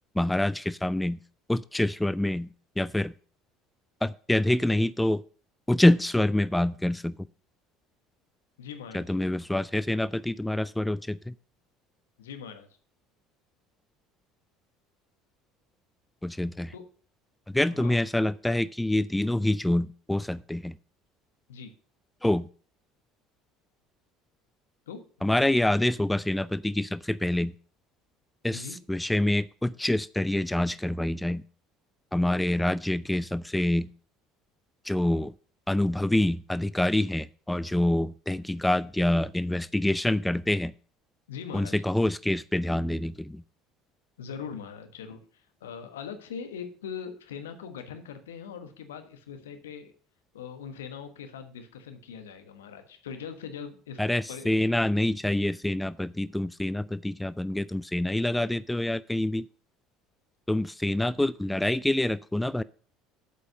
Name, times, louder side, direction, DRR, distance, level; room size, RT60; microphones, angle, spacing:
voice 1, 0.2-1.2 1.5-2.5 2.8-3.1 4.0-5.2 5.7-7.2 8.9-11.3 16.2-16.7 17.5-20.8 22.2-22.5 25.2-27.5 28.4-31.4 32.1-33.9 34.8-35.3 35.7-40.7 41.5-43.4 54.0-59.4 60.5-62.6, left 1 dB, 5° left, 18 dB, 0.3 m, -26 dB
voice 2, 8.6-9.1 12.2-12.7 16.7-16.8 17.6-18.0 21.5-21.7 24.9-25.3 28.5-28.8 41.3-41.7 44.2-45.2 45.6-49.9 50.3-54.0 54.3-54.5, left 7 dB, 80° left, 7 dB, 1.2 m, -41 dB
8.2 x 5.3 x 6.5 m, 0.42 s
hypercardioid pair, 65°, 0 cm